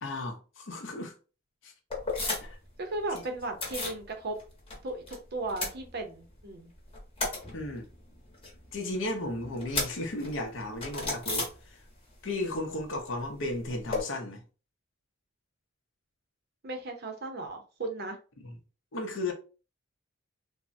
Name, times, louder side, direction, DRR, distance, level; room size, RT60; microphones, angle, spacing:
voice 1, 0.0-1.1 1.6-1.7 2.2-2.6 3.1-3.2 7.5-7.9 8.7-11.8 12.2-14.4 18.4-18.5 18.9-19.3, left 1 dB, 60° left, 0.6 m, -35 dB
sound 1, 1.9-2.7 2.9-4.0 4.4-5.2 5.4-6.4 6.7-12.1 12.4-14.0, left 3 dB, 25° left, 1.0 m, -36 dB
voice 2, 2.8-4.4 4.8-6.7 16.6-18.2, right 2 dB, 50° right, 0.6 m, -36 dB
3.4 x 2.0 x 2.5 m
head